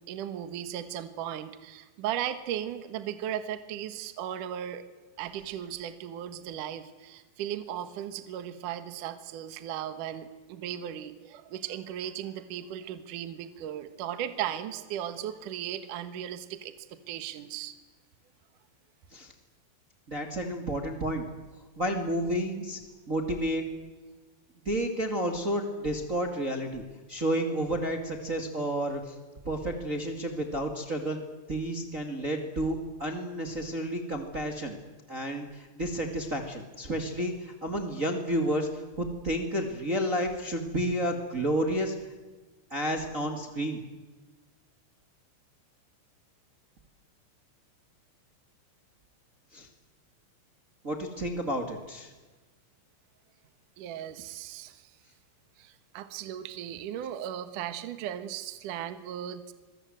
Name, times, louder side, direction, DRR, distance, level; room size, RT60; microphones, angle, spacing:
voice 1, 0.1-4.8 5.2-17.7 53.8-54.9 55.6-59.5, right 10 dB, 65° right, 10 dB, 2.1 m, -36 dB
voice 2, 20.1-21.3 21.8-22.8 23.1-23.6 24.6-26.8 27.1-29.2 29.4-31.2 31.5-34.8 35.1-41.9 42.7-43.8 49.5-49.7 50.8-52.1, right 1 dB, 35° right, 3 dB, 1.2 m, -31 dB
27.0 x 22.5 x 7.9 m, 1.2 s
omnidirectional pair, 5.6 m